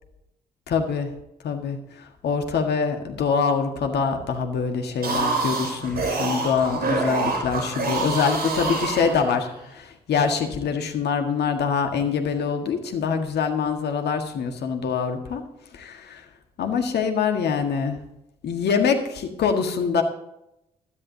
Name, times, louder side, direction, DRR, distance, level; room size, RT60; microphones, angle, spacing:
voice 1, 0.7-1.1 1.4-1.8 2.2-15.4 15.7-16.2 16.6-18.0 18.4-20.0, left 6 dB, 55° left, 5 dB, 1.6 m, -24 dB
sound 1, 4.9-9.6, right 3 dB, 50° right, 5.8 m, -26 dB
16.0 x 13.0 x 2.8 m, 0.85 s
figure-of-eight pair, 40°, 20 cm